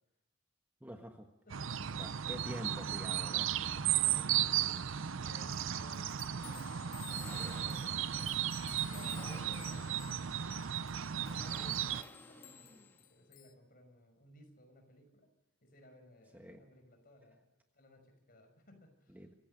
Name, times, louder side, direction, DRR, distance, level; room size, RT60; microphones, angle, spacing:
voice 1, 0.8-1.3 2.0-3.5 16.3-16.6 19.1-19.3, equal, 10° right, 4 dB, 1.3 m, -46 dB
voice 2, 1.4-2.7 3.1-8.3 8.6-15.3 15.6-17.4 17.7-19.2, left 1 dB, 45° left, 5 dB, 5.7 m, -60 dB
sound 1, 1.5-12.0, right 10 dB, 65° right, 0.6 m, -35 dB
sound 2, 5.5-13.5, left 15 dB, 75° left, 1.4 m, -55 dB
sound 3, 6.4-13.2, left 1 dB, 10° left, 1.6 m, -55 dB
26.0 x 15.5 x 6.5 m, 1.0 s
head